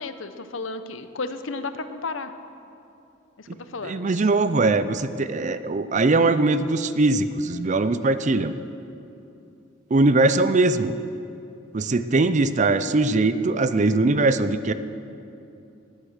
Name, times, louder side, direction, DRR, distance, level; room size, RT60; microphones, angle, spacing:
voice 1, 0.0-2.3 3.4-4.3, left 3 dB, 75° left, 10 dB, 0.8 m, -33 dB
voice 2, 3.8-8.5 9.9-11.0 11.7-14.7, right 2 dB, 35° right, 12 dB, 0.5 m, -21 dB
18.5 x 8.1 x 6.5 m, 2.7 s
head